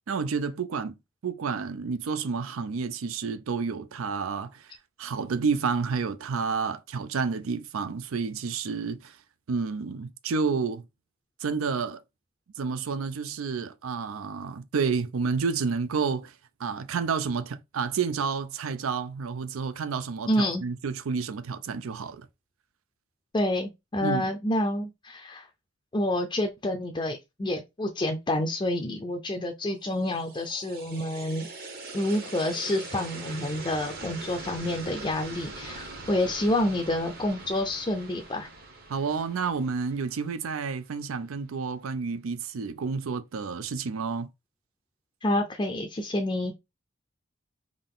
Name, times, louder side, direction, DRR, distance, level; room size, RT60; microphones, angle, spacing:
voice 1, 0.1-1.0 1.2-4.7 5.0-9.2 9.5-10.8 11.4-12.0 12.6-16.3 16.6-22.3 24.0-24.3 38.9-44.3, right 5 dB, 85° right, 0.5 m, -30 dB
voice 2, 20.3-20.6 23.3-25.5 25.9-31.5 31.9-38.5 45.2-46.5, left 1 dB, 25° left, 0.4 m, -28 dB
sound 1, 29.8-40.9, right 3 dB, 50° right, 1.0 m, -42 dB
3.7 x 2.5 x 3.7 m
head